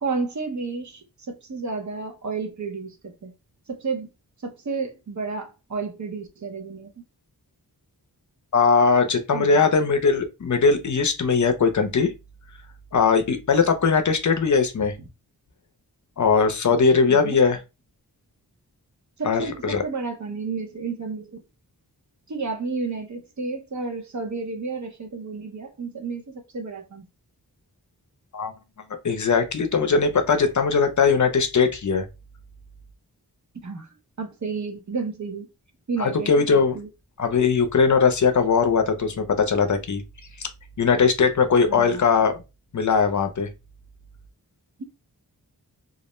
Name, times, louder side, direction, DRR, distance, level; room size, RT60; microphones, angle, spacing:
voice 1, 0.0-3.3 3.7-4.1 4.4-6.9 9.3-9.7 15.0-15.1 17.1-17.4 19.2-21.4 22.3-27.0 33.5-33.9 34.2-35.5 35.9-36.9 41.7-42.0 44.8-44.9, right 4 dB, 45° right, 0.7 m, -31 dB
voice 2, 8.5-12.1 12.9-14.9 16.2-17.6 19.2-19.8 28.3-28.5 29.0-32.0 36.0-36.8 37.2-40.0 40.8-42.3 42.7-43.5, left 5 dB, 50° left, 0.5 m, -20 dB
2.4 x 2.0 x 2.9 m
cardioid pair, 50°, 39 cm